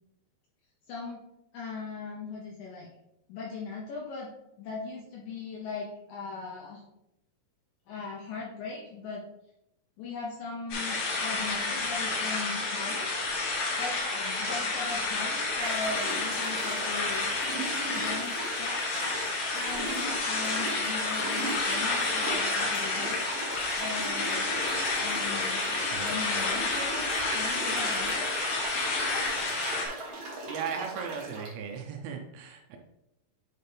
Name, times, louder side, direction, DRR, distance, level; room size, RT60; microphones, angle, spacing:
voice 1, 0.9-1.2 1.5-2.9 3.3-4.3 4.6-6.8 7.9-9.2 10.0-13.2 13.8-17.3 17.9-18.8 19.5-23.3 23.8-24.5 25.0-28.3, left 4 dB, 75° left, -3 dB, 2.1 m, -39 dB
sound 1, 10.7-29.9, left 3 dB, 55° left, 2.2 m, -30 dB
sound 2, 14.8-14.9 15.6-31.5, right 2 dB, 60° right, 1.6 m, -39 dB
voice 2, 25.9-26.4 30.5-32.8, right 6 dB, 80° right, 3 dB, 2.5 m, -37 dB
8.9 x 4.3 x 3.4 m, 0.85 s
omnidirectional pair, 4.8 m